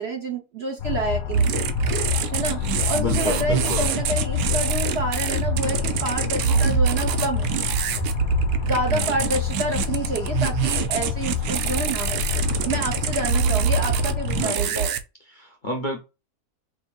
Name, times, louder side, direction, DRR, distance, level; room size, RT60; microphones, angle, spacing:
voice 1, 0.0-1.6 2.3-7.5 8.6-14.9, right 2 dB, 55° right, 0.8 m, -28 dB
sound 1, 0.8-14.4, left 9 dB, 70° left, 1.0 m, -28 dB
sound 2, 1.3-15.0, right 8 dB, 80° right, 1.1 m, -25 dB
voice 2, 2.6-3.9 8.9-9.1 14.4-14.8 15.3-16.0, left 2 dB, 50° left, 0.6 m, -31 dB
5.1 x 2.6 x 2.3 m
omnidirectional pair, 1.7 m